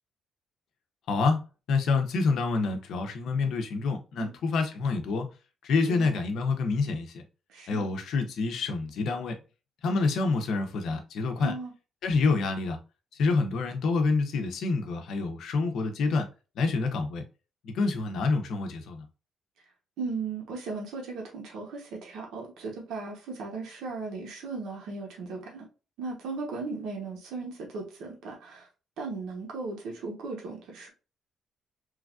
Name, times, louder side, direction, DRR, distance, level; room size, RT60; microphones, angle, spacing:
voice 1, 1.1-1.4 1.7-5.3 5.6-7.2 7.7-9.4 9.8-11.5 12.0-12.8 13.1-16.3 16.6-17.2 17.6-19.1, left 4 dB, 60° left, 0.5 m, -27 dB
voice 2, 7.5-7.9 11.4-11.7 20.0-25.7 26.0-28.7 29.0-30.9, right 3 dB, 80° right, 0.8 m, -37 dB
3.1 x 2.3 x 2.4 m
cardioid pair, 180°, 0 cm